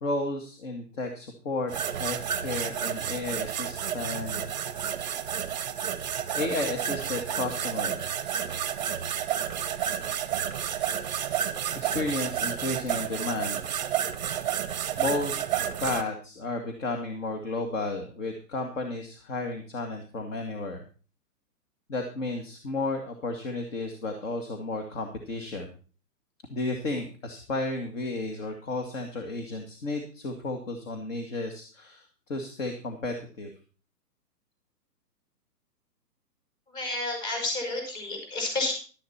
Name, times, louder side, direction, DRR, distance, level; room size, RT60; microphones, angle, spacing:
voice 1, 0.0-4.5 6.3-8.0 11.7-13.6 15.0-15.4 15.8-20.8 21.9-25.7 26.5-33.5, left 2 dB, 50° left, 4 dB, 2.1 m, -33 dB
sound 1, 1.7-16.0, right 9 dB, 30° right, 0.7 m, -31 dB
voice 2, 36.7-38.7, left 2 dB, 30° left, 3 dB, 5.7 m, -30 dB
12.0 x 10.5 x 4.3 m, 0.38 s
hypercardioid pair, 160°, 48 cm